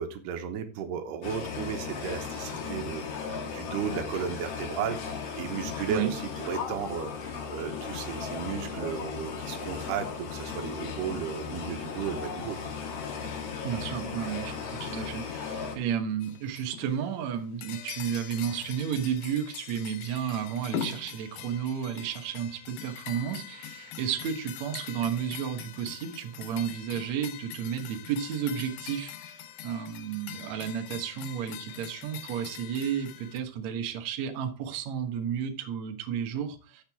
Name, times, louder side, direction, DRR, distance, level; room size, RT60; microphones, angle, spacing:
voice 1, 0.0-12.7, right 8 dB, 70° right, 7 dB, 2.9 m, -35 dB
sound 1, 1.2-15.8, left 6 dB, 55° left, 1.8 m, -36 dB
voice 2, 13.6-29.1 29.6-36.8, right 8 dB, 90° right, 6 dB, 1.5 m, -32 dB
sound 2, 16.2-17.0 17.4-33.4, left 10 dB, 75° left, 2.1 m, -42 dB
12.5 x 7.5 x 3.5 m, 0.33 s
omnidirectional pair, 5.2 m